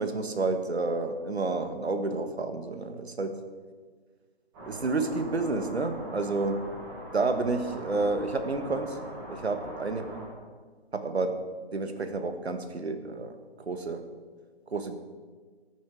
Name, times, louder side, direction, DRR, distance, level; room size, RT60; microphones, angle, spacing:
voice 1, 0.0-3.4 4.7-6.6 7.1-9.0 9.3-10.3 10.9-11.4 11.7-13.3 13.7-14.0 14.7-14.9, right 3 dB, 70° right, 8 dB, 1.7 m, -30 dB
sound 1, 4.5-10.2, right 1 dB, 15° right, 5.1 m, -42 dB
17.0 x 9.3 x 4.8 m, 1.5 s
figure-of-eight pair, 155°, 33 cm